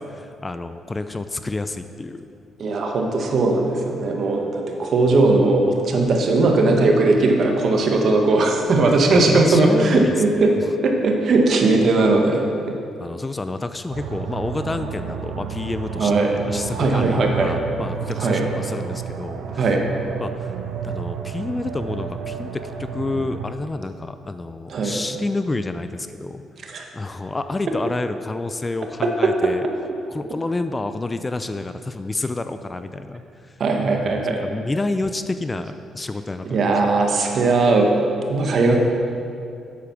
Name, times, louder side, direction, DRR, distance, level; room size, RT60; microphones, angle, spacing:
voice 1, 0.0-2.3 9.1-10.1 13.0-19.7 20.2-20.5 20.8-26.4 26.9-29.7 30.1-33.2 34.3-36.6, left 2 dB, 20° left, 10 dB, 0.4 m, -29 dB
voice 2, 2.6-10.5 10.8-12.4 16.0-16.3 16.8-17.5 18.2-18.4 19.6-19.8 24.7-25.0 26.7-26.8 29.2-29.3 33.6-34.4 36.4-38.8, right 3 dB, 55° right, 2 dB, 1.3 m, -18 dB
sound 1, 13.9-23.5, right 7 dB, 85° right, 0.7 m, -31 dB
8.4 x 7.0 x 5.9 m, 2.5 s
cardioid pair, 90°, 0 cm